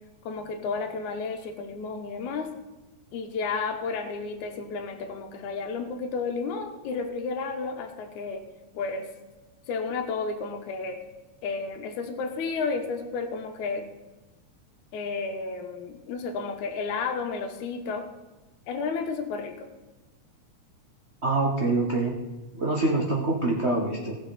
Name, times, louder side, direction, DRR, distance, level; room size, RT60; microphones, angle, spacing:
voice 1, 0.3-2.5 3.1-8.4 8.7-9.1 9.7-11.0 11.4-13.9 14.9-18.1 18.7-19.7, left 4 dB, 70° left, 5 dB, 2.4 m, -32 dB
voice 2, 21.2-22.1 22.5-24.2, right 2 dB, 70° right, -2 dB, 0.6 m, -25 dB
18.5 x 7.0 x 4.2 m, 1.1 s
omnidirectional pair, 3.7 m